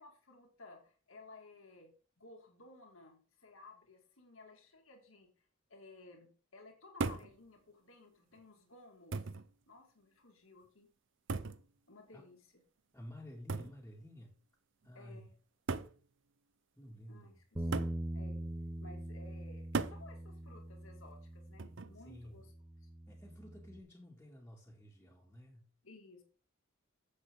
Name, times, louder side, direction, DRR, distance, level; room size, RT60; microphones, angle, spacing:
voice 1, 0.0-1.9 2.2-10.9 11.9-12.5 14.9-15.3 17.1-17.8 18.1-18.4 18.8-22.5 22.8-22.9 25.8-26.2, left 2 dB, 75° left, 2 dB, 2.3 m, -57 dB
sound 1, 7.0-7.4 8.4-8.5 9.1-9.5 11.3-11.7 13.5-13.8 14.8-14.9 15.7-16.0 17.7-18.0 19.7-20.1 21.6-22.0, right 4 dB, 60° right, 0.6 m, -37 dB
voice 2, 12.9-14.4 14.8-15.3 16.8-17.4 22.0-22.4 23.1-25.7, equal, 10° left, -4 dB, 2.0 m, -52 dB
Bass guitar, 17.6-23.8, right 1 dB, 20° right, 1.0 m, -43 dB
9.8 x 7.8 x 3.7 m, 0.38 s
head